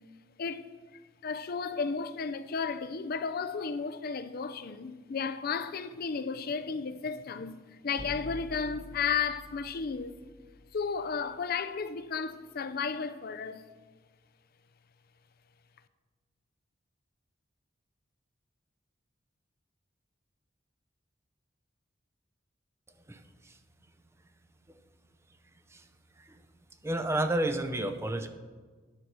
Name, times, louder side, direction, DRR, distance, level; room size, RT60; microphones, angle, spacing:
voice 1, 0.4-0.7 1.2-7.6 7.8-10.2 10.7-13.6, left 5 dB, 55° left, 0.5 m, -33 dB
sound 1, 8.0-11.8, left 1 dB, 20° left, 0.9 m, -48 dB
voice 2, 23.1-23.6 24.7-24.8 25.7-25.8 26.2-26.4 26.8-28.3, right 1 dB, 15° right, 0.6 m, -31 dB
9.7 x 5.8 x 6.2 m
head